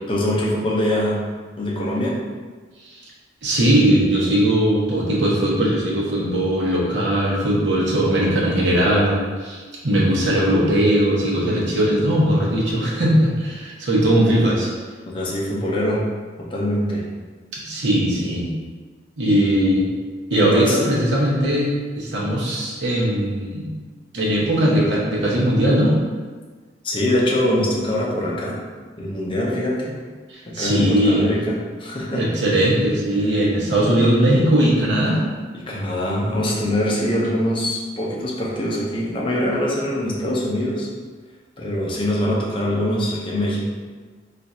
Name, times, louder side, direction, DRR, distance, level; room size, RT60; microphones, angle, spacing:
voice 1, 0.1-1.2 1.6-2.2 15.1-16.1 16.4-17.1 19.2-19.6 20.3-20.8 26.8-28.6 29.0-29.9 30.5-32.3 35.5-40.9 41.6-43.6, left 1 dB, 30° left, -4 dB, 0.6 m, -23 dB
voice 2, 3.4-14.7 17.5-18.5 19.2-19.8 20.3-23.7 24.1-26.0 30.3-31.2 32.1-35.2, right 1 dB, 90° right, -5 dB, 0.8 m, -19 dB
2.5 x 2.5 x 4.1 m, 1.5 s
head